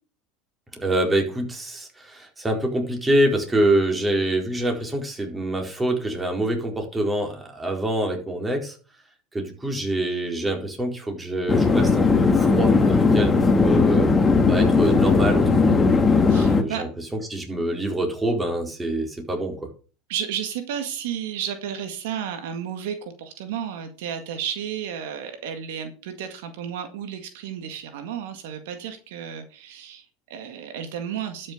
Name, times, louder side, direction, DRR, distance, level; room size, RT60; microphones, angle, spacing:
voice 1, 0.7-8.8 9.3-14.1 14.4-15.9 16.4-16.9 17.3-19.7, right 1 dB, 15° right, 2 dB, 4.4 m, -25 dB
sound 1, 11.5-16.6, left 4 dB, 20° left, 1.9 m, -18 dB
voice 2, 16.3-16.9 20.1-31.5, right 9 dB, 75° right, 7 dB, 1.9 m, -32 dB
12.5 x 6.6 x 5.2 m, 0.38 s
hypercardioid pair, 95°, 0 cm